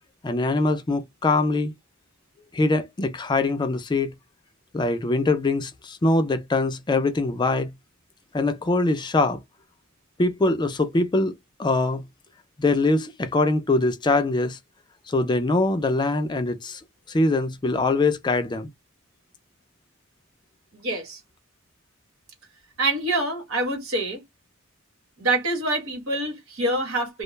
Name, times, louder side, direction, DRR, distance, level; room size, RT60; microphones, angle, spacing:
voice 1, 0.2-1.7 2.5-4.1 4.7-7.7 8.3-9.4 10.2-11.3 11.6-12.0 12.6-14.6 15.1-16.8 17.1-18.7, left 2 dB, 20° left, 0.3 m, -23 dB
voice 2, 20.7-21.2 22.8-24.2 25.2-27.2, right 2 dB, 90° right, 1.4 m, -26 dB
2.3 x 2.2 x 3.1 m
head